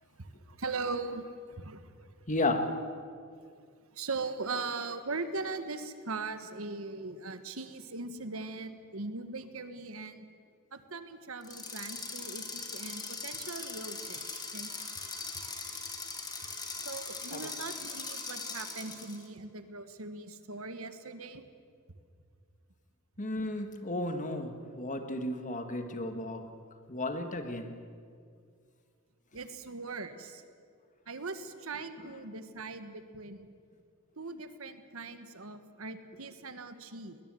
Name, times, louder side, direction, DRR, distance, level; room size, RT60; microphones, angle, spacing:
voice 1, 0.0-2.1 3.9-10.3 10.7-14.7 16.8-21.4 29.3-30.4 31.1-33.5 34.2-37.2, right 3 dB, 70° right, 1.4 m, -40 dB
voice 2, 2.3-2.8 17.3-17.5 23.2-26.5 26.9-27.8, left 2 dB, 35° left, 1.7 m, -33 dB
sound 1, 11.4-19.2, left 4 dB, 20° left, 2.6 m, -40 dB
21.0 x 20.0 x 7.7 m
head